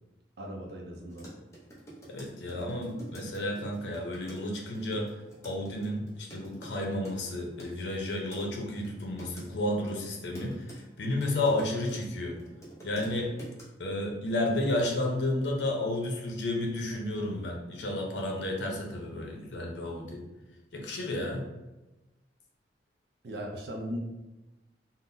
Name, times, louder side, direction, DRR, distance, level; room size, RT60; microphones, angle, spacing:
voice 1, 0.4-1.3 23.2-24.0, equal, 65° right, 1 dB, 0.5 m, -38 dB
sound 1, 1.1-8.4 8.8-9.5 9.9-12.1 12.4-13.6, right 1 dB, 15° left, 0.6 m, -47 dB
voice 2, 2.1-5.1 5.4-12.4 12.8-13.3 13.8-20.2 20.7-21.4, left 1 dB, 90° left, 1 dB, 0.6 m, -32 dB
3.6 x 2.1 x 2.6 m, 1.1 s
head